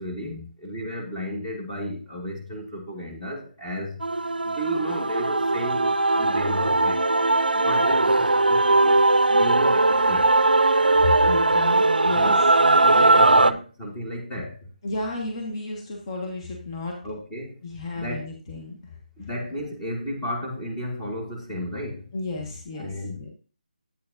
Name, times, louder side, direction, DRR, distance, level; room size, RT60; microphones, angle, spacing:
voice 1, 0.0-4.0 4.4-7.0 7.5-9.0 9.3-10.4 11.7-12.4 12.8-14.7 17.0-17.6 17.9-18.3 19.2-22.1 22.8-23.2, equal, 10° left, -3 dB, 1.6 m, -33 dB
Male singing / Female singing / Musical instrument, 4.0-13.5, right 2 dB, 85° right, 0.4 m, -19 dB
voice 2, 11.0-12.5 14.8-17.0 17.6-19.3 22.1-23.3, left 3 dB, 35° left, 0 dB, 1.5 m, -33 dB
8.7 x 8.4 x 2.6 m, 0.37 s
figure-of-eight pair, 155°, 5 cm